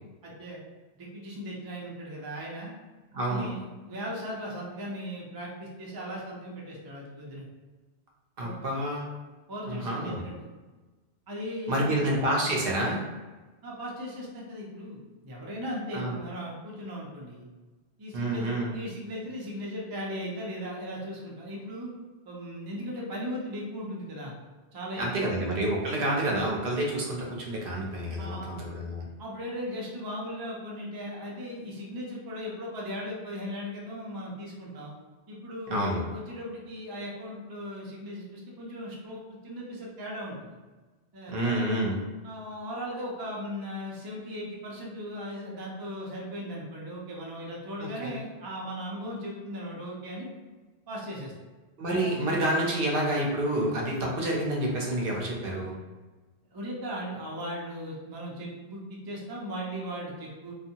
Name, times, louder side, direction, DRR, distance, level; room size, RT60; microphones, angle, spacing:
voice 1, 0.2-0.6 1.0-2.7 3.3-7.5 8.4-8.6 9.5-10.5 11.3-12.0 13.6-17.5 18.0-21.9 22.3-24.3 24.7-25.5 28.2-28.5 29.2-34.9 35.3-40.6 41.1-41.7 42.2-50.3 50.9-51.3 52.0-52.3 56.5-60.5, equal, 35° right, -4 dB, 0.4 m, -38 dB
voice 2, 3.1-3.5 8.4-9.1 9.7-10.2 11.7-13.0 15.9-16.2 18.1-18.7 25.0-29.0 35.7-36.0 41.3-42.0 47.8-48.1 51.8-55.8, right 1 dB, 65° right, -2 dB, 0.7 m, -28 dB
2.6 x 2.3 x 2.7 m, 1.2 s
omnidirectional pair, 1.1 m